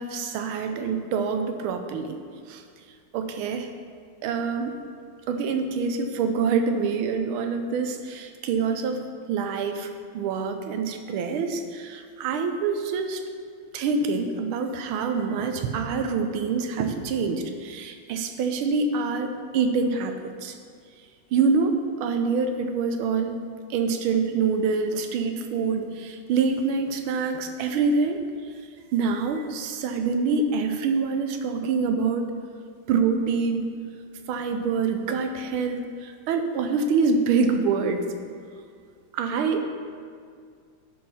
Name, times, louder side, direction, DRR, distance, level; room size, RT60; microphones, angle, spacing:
voice 1, 0.0-2.2 2.5-2.6 3.1-3.7 4.2-4.7 5.3-9.0 9.3-13.2 13.7-19.3 19.5-20.1 20.4-20.5 21.3-23.4 23.7-28.2 28.9-32.3 32.9-33.7 34.3-38.1 39.1-39.6, right 5 dB, 80° right, 6 dB, 1.5 m, -25 dB
9.3 x 4.6 x 5.5 m, 2.1 s
omnidirectional pair, 2.3 m